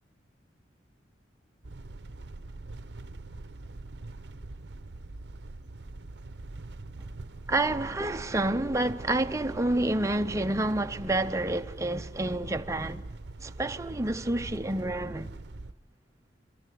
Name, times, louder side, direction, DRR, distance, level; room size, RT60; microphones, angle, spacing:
sound 1, 1.6-15.7, right 2 dB, 60° right, 0.8 m, -43 dB
voice 1, 7.5-13.0 13.4-15.3, right 2 dB, 15° right, 0.6 m, -29 dB
26.0 x 14.5 x 9.3 m
head